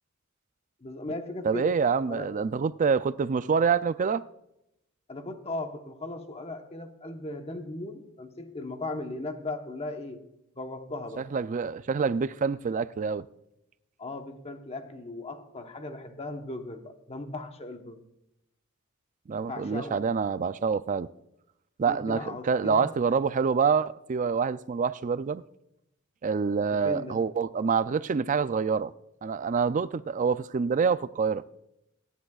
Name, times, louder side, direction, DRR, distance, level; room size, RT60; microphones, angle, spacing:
voice 1, 0.8-1.8 2.1-2.3 5.1-10.2 10.6-11.3 14.0-18.0 19.5-20.1 21.8-22.9 26.7-27.2, left 2 dB, 30° left, 1.0 m, -37 dB
voice 2, 1.4-4.2 11.2-13.3 19.3-21.1 21.8-25.4 26.2-28.9 29.2-31.4, right 5 dB, 35° right, 0.4 m, -26 dB
24.5 x 10.5 x 2.4 m
head